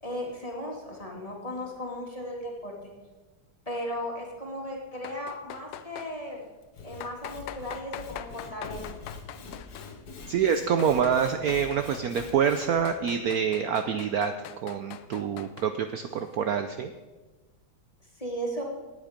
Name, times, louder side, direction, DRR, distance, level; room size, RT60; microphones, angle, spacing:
voice 1, 0.0-2.9 3.7-6.4 6.8-9.0 18.2-18.6, equal, 15° left, -1 dB, 2.4 m, -36 dB
sound 1, 4.9-6.1 7.0-10.0 10.6-12.4 12.6-15.7, left 11 dB, 80° left, 1.5 m, -43 dB
Sawing / Wood, 6.6-12.8, left 4 dB, 50° left, 1.8 m, -44 dB
voice 2, 10.3-14.3 14.6-16.9, right 7 dB, 75° right, 8 dB, 0.8 m, -26 dB
18.5 x 8.7 x 5.1 m, 1.2 s
omnidirectional pair, 2.3 m